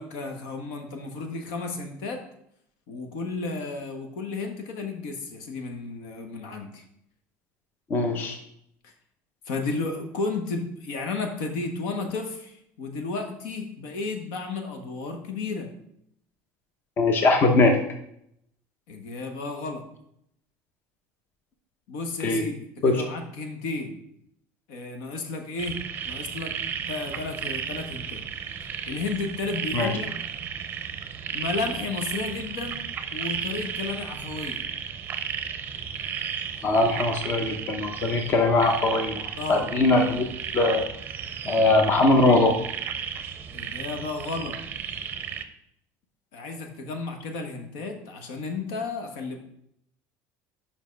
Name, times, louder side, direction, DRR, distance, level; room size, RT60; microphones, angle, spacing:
voice 1, 0.0-2.2 2.9-6.8 8.8-8.9 9.5-15.7 18.9-19.8 21.9-22.6 22.8-24.0 24.7-25.8 26.0-26.5 26.9-28.2 28.9-30.1 31.3-32.8 33.1-34.6 39.4-39.7 43.5-44.6 46.3-49.4, left 3 dB, 80° left, 5 dB, 1.3 m, -33 dB
voice 2, 7.9-8.4 17.0-17.8 22.2-22.4 22.8-23.0 29.7-29.9 36.6-40.2 40.5-40.8 41.5-42.5, left 2 dB, 30° left, 4 dB, 0.8 m, -21 dB
sound 1, 25.6-45.4, right 7 dB, 30° right, 0.6 m, -34 dB
5.4 x 5.3 x 5.2 m, 0.74 s
cardioid pair, 150°, 7 cm